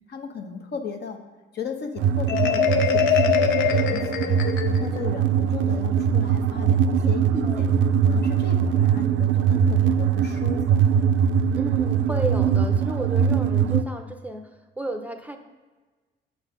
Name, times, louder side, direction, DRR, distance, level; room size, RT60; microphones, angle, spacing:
voice 1, 0.1-1.2 1.5-4.3 4.6-7.7 8.0-10.9, left 5 dB, 60° left, 4 dB, 0.9 m, -36 dB
sound 1, 2.0-13.8, right 7 dB, 75° right, 0.4 m, -22 dB
Marimba xylophone, 2.3-5.0, left 7 dB, 85° left, 0.6 m, -23 dB
voice 2, 11.5-15.4, right 2 dB, 5° right, 6 dB, 0.5 m, -33 dB
6.0 x 4.0 x 5.9 m, 1.3 s
cardioid pair, 90°, 20 cm